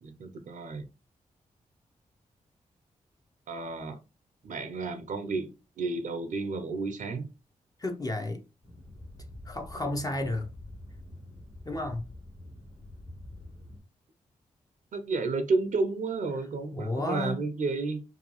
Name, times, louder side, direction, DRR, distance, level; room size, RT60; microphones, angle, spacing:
voice 1, 0.0-0.9 3.5-4.0 4.4-7.3 14.9-18.0, right 3 dB, 65° right, 0.5 m, -31 dB
voice 2, 7.8-8.4 9.4-10.5 11.6-12.1 16.7-17.4, left 2 dB, 25° left, 0.5 m, -32 dB
sound 1, 8.6-13.8, left 1 dB, 55° left, 1.3 m, -46 dB
2.6 x 2.3 x 2.9 m
supercardioid pair, 45°, 15 cm